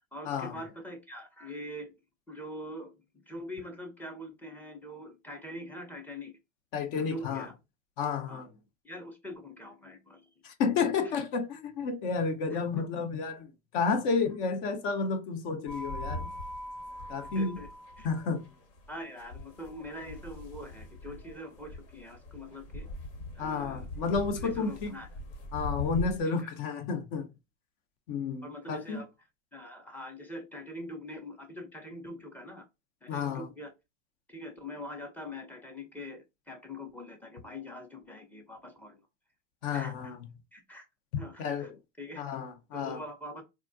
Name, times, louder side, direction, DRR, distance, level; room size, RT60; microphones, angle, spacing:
voice 1, 0.1-1.9 2.3-2.9 3.3-6.4 7.0-7.5 8.3-8.4 8.8-10.3 11.0-11.1 12.5-12.8 14.3-14.4 17.3-17.7 18.0-18.1 18.9-22.9 23.4-23.8 24.4-25.1 26.2-26.3 28.4-29.1 29.5-32.7 33.0-33.7 34.3-39.0 39.7-39.9 40.5-40.9 41.2-41.7 42.0-42.2 42.7-43.4, left 1 dB, 5° left, 0.5 m, -43 dB
voice 2, 6.7-7.5 8.0-8.5 10.4-16.3 17.1-17.6 18.0-18.5 23.4-24.9 25.5-27.3 28.1-29.0 33.1-33.5 39.6-40.2 41.4-41.8 42.2-43.0, left 5 dB, 50° left, 0.7 m, -31 dB
sound 1, 15.7-26.2, left 1 dB, 65° left, 1.1 m, -41 dB
3.5 x 2.2 x 2.5 m
hypercardioid pair, 105°, 40 cm